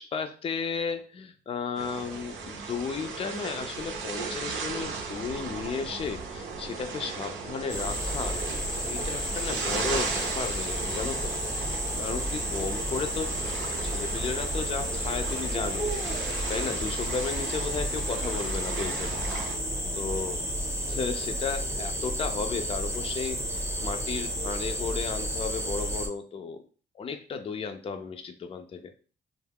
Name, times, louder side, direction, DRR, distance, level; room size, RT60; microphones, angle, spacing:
voice 1, 0.0-8.4 8.9-11.4 11.9-13.3 13.8-19.2 19.9-20.4 20.9-26.6 26.9-29.0, left 5 dB, 30° left, 7 dB, 0.4 m, -34 dB
sound 1, 1.8-19.6, right 5 dB, 75° right, 0.6 m, -36 dB
sound 2, 7.7-26.1, equal, 15° right, 0.8 m, -31 dB
2.3 x 2.1 x 3.4 m, 0.38 s
cardioid pair, 90°, 20 cm